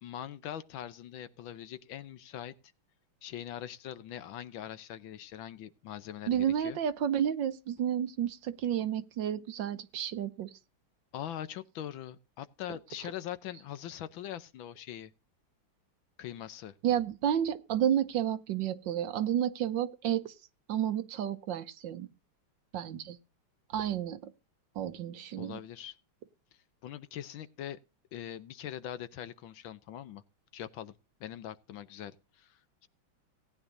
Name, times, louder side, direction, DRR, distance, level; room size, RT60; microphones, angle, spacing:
voice 1, 0.0-2.5 3.2-6.8 11.1-15.1 16.2-16.7 25.4-26.0 26.8-27.8 28.1-30.2 30.5-30.9 31.2-32.9, left 11 dB, 70° left, 1.5 m, -42 dB
voice 2, 6.3-10.5 16.8-20.3 20.7-22.1 22.7-23.2 23.7-24.3 24.8-25.6, right 10 dB, 70° right, 1.4 m, -31 dB
18.0 x 9.9 x 2.6 m
omnidirectional pair, 2.3 m